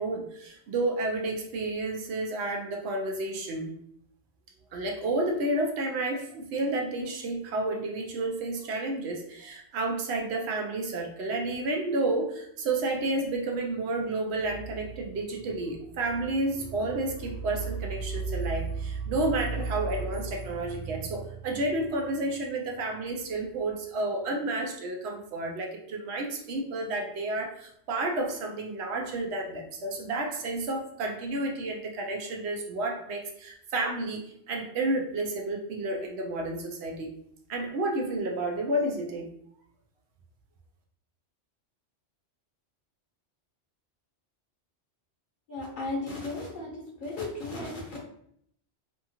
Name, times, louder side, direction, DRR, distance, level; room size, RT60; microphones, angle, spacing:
voice 1, 0.0-3.7 4.7-37.1 37.5-39.3, right 2 dB, 70° right, 1 dB, 0.8 m, -31 dB
voice 2, 45.5-46.7 47.0-48.0, left 2 dB, 50° left, -2 dB, 0.8 m, -35 dB
2.7 x 2.4 x 2.7 m, 0.69 s
omnidirectional pair, 1.2 m